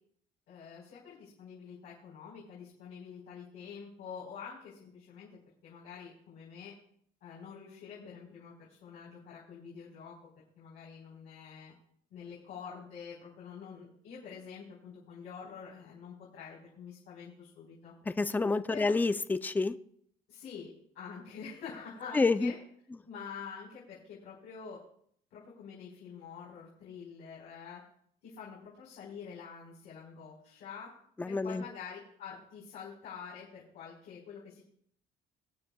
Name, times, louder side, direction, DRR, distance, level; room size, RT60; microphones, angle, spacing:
voice 1, 0.5-6.7 7.2-10.1 10.6-11.7 12.1-17.9 18.7-18.9 20.3-20.7 20.9-22.6 23.0-24.8 25.3-27.8 28.2-30.9 31.2-34.6, left 6 dB, 80° left, -6 dB, 4.3 m, -47 dB
voice 2, 18.1-19.8 22.1-22.5 31.2-31.6, left 3 dB, 10° left, 13 dB, 0.4 m, -28 dB
22.5 x 9.1 x 2.3 m, 0.64 s
cardioid pair, 110°, 17 cm